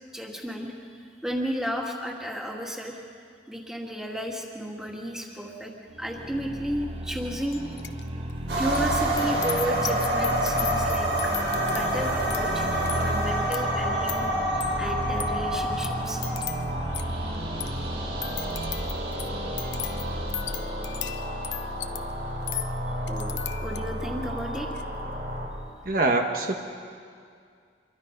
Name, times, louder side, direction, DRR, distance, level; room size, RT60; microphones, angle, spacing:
voice 1, 0.1-0.7 1.2-3.0 3.5-7.6 8.6-16.2 23.1-24.7, equal, 5° right, -1 dB, 2.4 m, -33 dB
sound 1, 5.9-20.7, right 1 dB, 30° right, 1.4 m, -35 dB
sound 2, 7.5-8.0 8.3-24.1 24.5-24.8, left 11 dB, 80° left, 0.9 m, -39 dB
sound 3, 8.5-25.5, right 1 dB, 75° right, 5.6 m, -29 dB
voice 2, 25.8-26.5, right 2 dB, 50° right, 3 dB, 1.3 m, -24 dB
27.0 x 23.0 x 5.4 m, 2.2 s
head